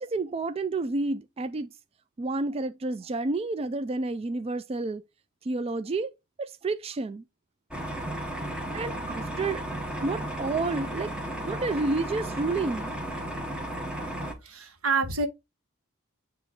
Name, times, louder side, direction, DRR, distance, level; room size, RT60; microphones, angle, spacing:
voice 1, 0.0-1.7 2.2-5.0 5.4-6.1 6.4-7.2 8.7-9.6 10.0-11.1 11.5-12.9, right 3 dB, 30° right, 0.3 m, -30 dB
sound 1, 7.7-14.3, right 1 dB, 5° right, 1.2 m, -34 dB
voice 2, 14.4-15.3, right 4 dB, 85° right, 1.6 m, -27 dB
8.9 x 3.0 x 3.8 m
head